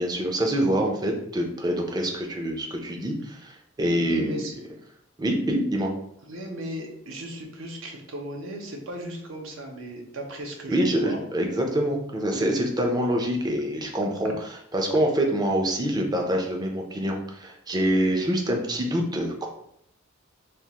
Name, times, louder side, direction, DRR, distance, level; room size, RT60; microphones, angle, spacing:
voice 1, 0.0-4.4 5.2-5.9 10.7-14.3 14.7-19.5, right 1 dB, 20° right, 2 dB, 0.4 m, -25 dB
voice 2, 3.9-4.5 6.3-11.2 12.3-12.6, right 1 dB, 80° right, 2 dB, 0.7 m, -36 dB
3.4 x 2.4 x 2.8 m, 0.72 s
head